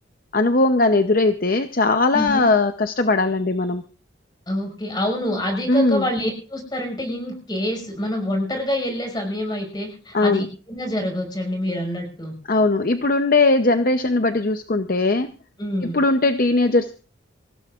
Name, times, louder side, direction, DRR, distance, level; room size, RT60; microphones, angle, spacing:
voice 1, 0.3-3.8 5.7-6.1 10.1-10.5 12.5-15.3 15.8-16.9, left 2 dB, 45° left, 8 dB, 0.7 m, -19 dB
voice 2, 2.1-2.5 4.5-12.3 15.6-16.0, left 1 dB, 20° left, 3 dB, 5.3 m, -26 dB
26.5 x 16.0 x 2.4 m, 0.38 s
head